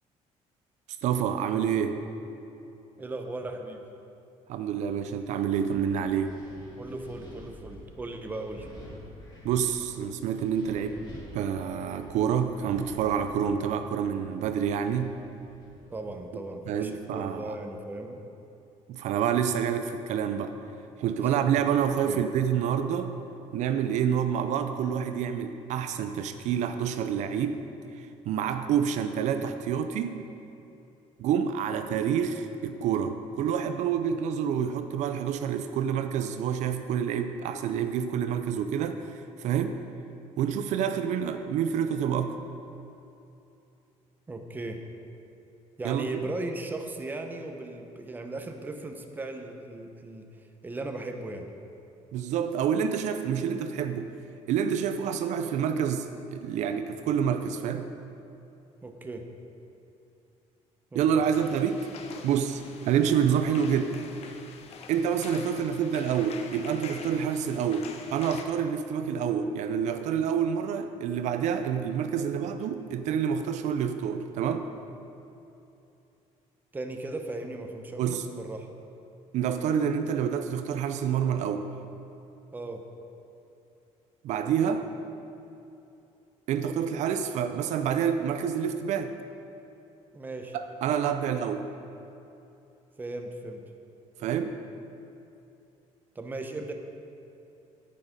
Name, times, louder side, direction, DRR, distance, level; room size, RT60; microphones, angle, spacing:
voice 1, 1.0-2.0 4.5-6.4 9.4-11.0 11.3-15.1 16.7-17.6 18.9-20.6 21.0-23.1 23.5-27.6 27.9-30.2 31.2-39.8 40.4-42.4 45.8-46.2 52.1-54.1 54.5-57.9 60.9-61.9 62.2-64.0 64.9-74.7 78.0-78.3 79.3-81.7 84.2-84.9 86.5-89.2 90.5-91.6 94.2-94.5, right 8 dB, 65° right, 8 dB, 0.5 m, -28 dB
voice 2, 3.0-3.8 6.8-8.7 15.9-18.2 21.2-21.3 22.0-22.2 44.3-44.8 45.8-51.5 58.8-59.3 60.9-61.2 76.7-78.7 82.5-82.8 90.1-90.6 93.0-93.6 96.1-96.7, right 2 dB, 15° right, 4 dB, 0.8 m, -37 dB
Wind, 4.7-16.2, left 1 dB, 35° left, 2.4 m, -49 dB
sound 1, 61.3-68.4, left 5 dB, 55° left, 0.8 m, -45 dB
9.5 x 8.6 x 5.1 m, 2.9 s
cardioid pair, 140°, 13 cm